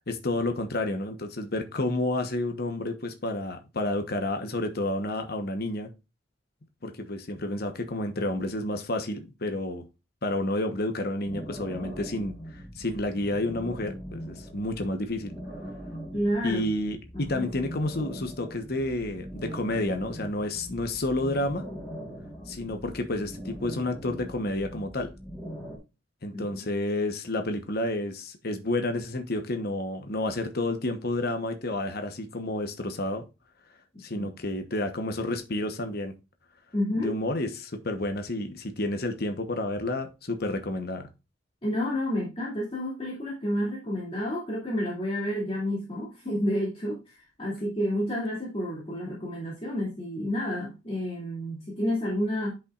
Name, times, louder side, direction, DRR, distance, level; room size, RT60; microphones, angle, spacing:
voice 1, 0.1-5.9 6.8-9.9 10.2-15.3 16.4-21.7 22.5-25.1 26.2-33.3 34.0-36.1 37.0-41.1, left 1 dB, 50° left, 1.0 m, -30 dB
sound 1, 11.2-25.8, equal, 5° left, 3.0 m, -41 dB
voice 2, 16.1-16.6 17.1-17.5 26.3-26.7 34.1-34.3 36.7-37.1 41.6-52.5, equal, 30° left, 2.6 m, -30 dB
9.9 x 5.6 x 2.4 m
head